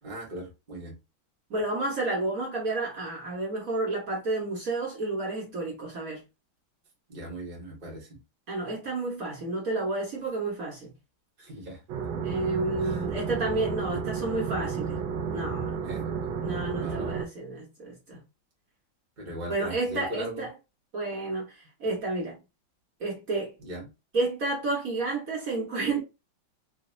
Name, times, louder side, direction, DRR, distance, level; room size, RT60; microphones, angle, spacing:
voice 1, 0.0-0.9 7.1-8.2 11.4-11.8 12.8-13.0 15.8-16.0 16.8-17.2 19.2-20.4 23.6-23.9, right 1 dB, 30° right, 1.2 m, -39 dB
voice 2, 1.5-6.2 8.5-10.9 12.2-15.0 15.3-15.7 16.4-18.2 19.5-20.5 20.9-22.4 23.0-23.5 24.1-26.0, right 2 dB, 50° right, 1.5 m, -30 dB
sound 1, 11.9-17.3, right 6 dB, 75° right, 1.5 m, -32 dB
3.9 x 2.7 x 2.6 m
omnidirectional pair, 2.2 m